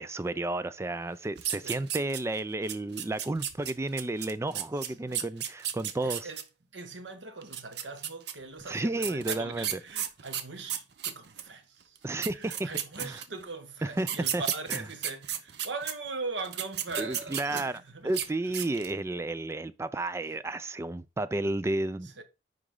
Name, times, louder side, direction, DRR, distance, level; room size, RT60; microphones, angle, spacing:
voice 1, 0.0-6.2 8.7-9.8 12.0-12.7 13.0-13.2 13.8-14.4 14.7-14.8 17.0-17.7 18.0-22.1, right 2 dB, 15° right, 0.3 m, -32 dB
sound 1, 1.4-2.4 2.7-6.4 7.4-8.3 9.0-11.5 12.0-12.1 12.2-13.4 14.0-15.9 16.4-17.8 18.1-18.3 18.5-19.0, right 10 dB, 65° right, 0.8 m, -33 dB
voice 2, 4.8-5.2 6.0-6.4 6.7-12.0 12.3-18.1 18.5-18.6 22.0-22.2, right 3 dB, 90° right, 1.2 m, -40 dB
9.7 x 4.0 x 3.7 m
head